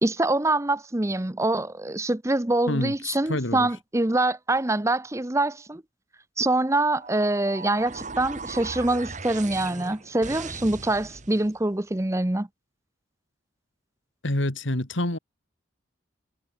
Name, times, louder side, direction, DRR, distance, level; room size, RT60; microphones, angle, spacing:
voice 1, 0.0-5.8 6.4-12.5, right 2 dB, 15° right, 0.7 m, -25 dB
voice 2, 3.3-3.7 14.2-15.2, left 1 dB, 70° left, 2.8 m, -26 dB
sound 1, 7.0-11.5, right 4 dB, 35° right, 2.3 m, -38 dB
head